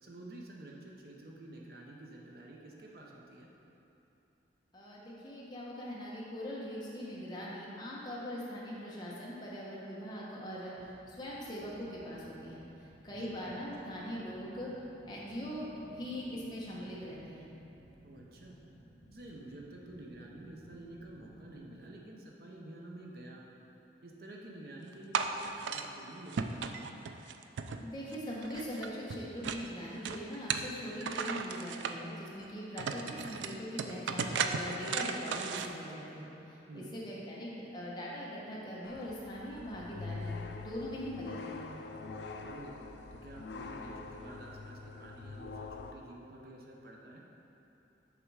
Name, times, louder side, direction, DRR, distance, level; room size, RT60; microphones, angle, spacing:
voice 1, 0.0-3.5 13.1-13.4 18.0-18.6 19.1-23.5 24.0-26.9 36.7-36.9 42.4-42.8 43.1-47.2, right 1 dB, 55° right, -2 dB, 0.8 m, -49 dB
voice 2, 4.7-10.7 11.1-14.7 15.0-17.4 27.8-40.3 40.6-41.8, equal, 25° left, -6 dB, 1.1 m, -41 dB
sound 1, 10.8-21.6, equal, ahead, 0.5 m, -59 dB
sound 2, 25.1-25.9 26.3-28.2 28.4-29.7 30.0-31.9 32.4-32.5 32.8-35.7, right 6 dB, 80° right, 0.4 m, -35 dB
sound 3, 38.8-45.9, left 3 dB, 70° left, 0.4 m, -44 dB
6.6 x 5.2 x 4.7 m, 3.0 s
head